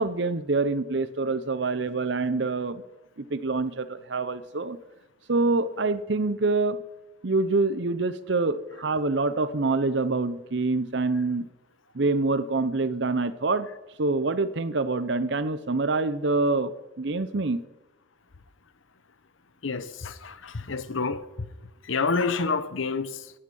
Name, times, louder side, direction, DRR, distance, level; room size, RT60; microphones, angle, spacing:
voice 1, 0.0-2.8 3.2-4.8 5.3-6.8 7.2-11.5 11.9-13.7 14.0-17.6, right 3 dB, 60° right, 0.8 m, -26 dB
voice 2, 19.6-21.3 21.8-23.3, left 4 dB, 75° left, 0.9 m, -28 dB
14.0 x 10.0 x 5.5 m
head